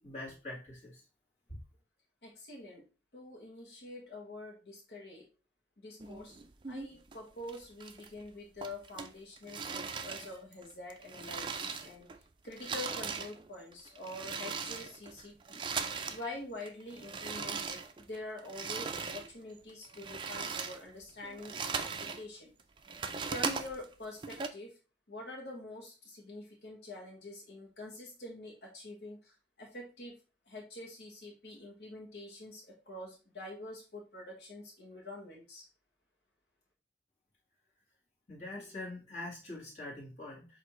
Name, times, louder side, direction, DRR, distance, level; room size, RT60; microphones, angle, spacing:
voice 1, 0.0-0.9 38.3-40.5, left 2 dB, 40° left, -4 dB, 1.8 m, -43 dB
voice 2, 2.2-2.8 3.1-5.3 5.8-6.3 6.7-12.1 12.4-15.6 16.1-17.8 18.1-22.5 23.3-24.8 25.1-30.2 30.5-35.7, left 2 dB, 70° left, -1 dB, 1.1 m, -46 dB
sound 1, 6.0-7.2 7.5-8.3 8.6-12.2 12.4-16.2 16.6-19.3 19.7-22.2 22.6-24.5, right 5 dB, 25° right, 0.3 m, -39 dB
6.5 x 2.6 x 3.0 m, 0.33 s
head